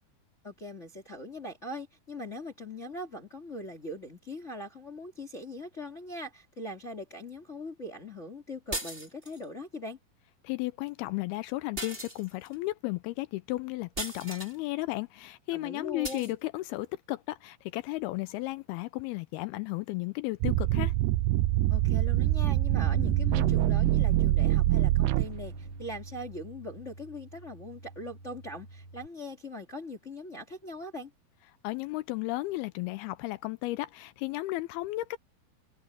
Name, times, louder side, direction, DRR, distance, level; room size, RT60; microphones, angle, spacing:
voice 1, 0.4-10.0 15.5-16.3 21.7-31.1, left 1 dB, 25° left, 1.9 m, -41 dB
sound 1, 8.7-9.4 11.8-12.5 14.0-14.6 16.0-16.3, right 2 dB, 15° right, 4.1 m, -37 dB
voice 2, 10.4-20.9 31.6-35.2, left 19 dB, 80° left, 2.4 m, -34 dB
sound 2, 20.4-25.7, right 16 dB, 85° right, 2.7 m, -25 dB
Bass guitar, 22.8-29.1, right 2 dB, 45° right, 2.4 m, -39 dB
omnidirectional pair, 4.7 m